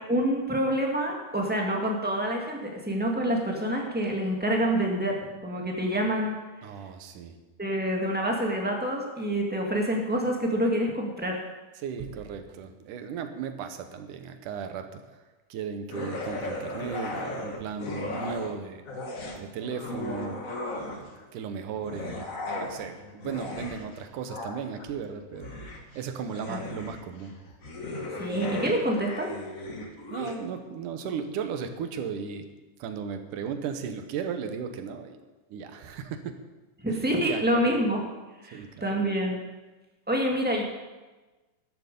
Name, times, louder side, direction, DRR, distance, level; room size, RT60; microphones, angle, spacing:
voice 1, 0.1-6.4 7.6-11.4 26.5-26.6 28.2-29.3 36.8-38.0 38.4-39.4 40.1-40.6, right 1 dB, 10° right, 0 dB, 0.5 m, -27 dB
voice 2, 6.6-7.4 11.8-15.2 15.5-18.8 19.4-20.4 21.3-22.3 22.5-25.5 26.0-27.4 30.1-32.5 32.8-35.2 35.5-36.4 36.9-37.8 38.5-39.0, right 6 dB, 75° right, 8 dB, 2.5 m, -36 dB
sound 1, 15.9-18.6 18.9-21.2 21.8-30.4, left 2 dB, 55° left, 0.9 m, -36 dB
13.5 x 12.0 x 5.3 m, 1.2 s
omnidirectional pair, 3.8 m